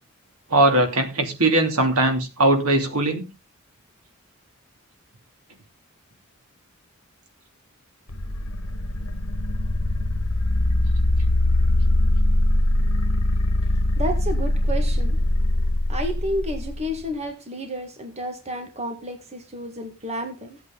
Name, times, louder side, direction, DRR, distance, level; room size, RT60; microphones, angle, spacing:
voice 1, 0.5-3.2, right 2 dB, 80° right, 3.0 m, -20 dB
sound 1, 8.1-16.9, left 1 dB, 80° left, 1.4 m, -22 dB
voice 2, 14.0-15.2 15.9-20.6, equal, 30° right, 1.8 m, -31 dB
16.0 x 8.4 x 3.9 m
head